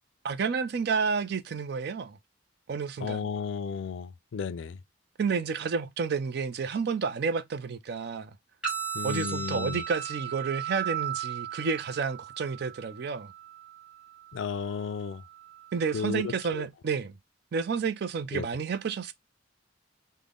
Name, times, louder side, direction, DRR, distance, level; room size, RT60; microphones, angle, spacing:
voice 1, 0.2-2.2 2.7-3.3 5.2-8.3 9.0-13.3 15.7-17.2 17.5-19.1, right 5 dB, 55° right, 0.4 m, -30 dB
voice 2, 3.0-4.8 8.9-9.8 14.3-15.2 15.9-16.7 18.3-18.5, left 6 dB, 70° left, 0.4 m, -34 dB
sound 1, 8.6-16.6, right 8 dB, 5° right, 1.6 m, -38 dB
3.7 x 2.1 x 3.4 m
head